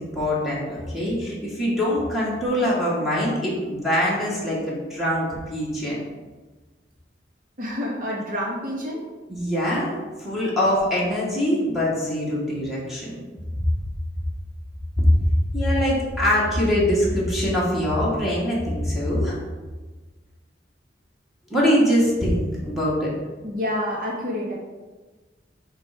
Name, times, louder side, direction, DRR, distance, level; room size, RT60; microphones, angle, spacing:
voice 1, 0.0-6.0 9.3-9.9 10.2-13.2 15.0-15.1 15.5-19.4 21.5-23.1, equal, ahead, -7 dB, 1.6 m, -23 dB
voice 2, 7.6-9.0 23.4-24.6, left 1 dB, 50° right, -4 dB, 1.8 m, -28 dB
7.3 x 3.3 x 5.1 m, 1.3 s
head